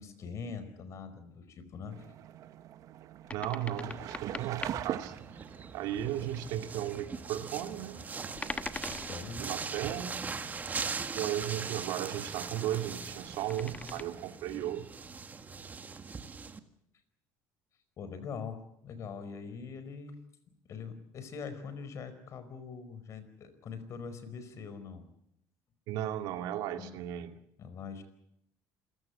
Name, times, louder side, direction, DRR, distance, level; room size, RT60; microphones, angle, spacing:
voice 1, 0.0-2.0 8.8-9.5 18.0-20.2 20.7-25.1 26.8-26.9 27.6-28.0, left 5 dB, 45° left, 12 dB, 4.7 m, -43 dB
sound 1, 1.9-14.4, right 11 dB, 55° right, 1.1 m, -46 dB
sound 2, 3.3-4.8 8.3-9.4 13.0-14.0, left 3 dB, 20° left, 1.2 m, -41 dB
voice 2, 3.3-5.1 5.7-8.0 9.4-10.3 11.1-14.9 25.9-27.4, right 11 dB, 75° right, 7 dB, 2.3 m, -35 dB
sound 3, 3.9-16.6, right 5 dB, 25° right, 1.7 m, -41 dB
27.5 x 16.5 x 8.6 m, 0.79 s
cardioid pair, 120°, 7 cm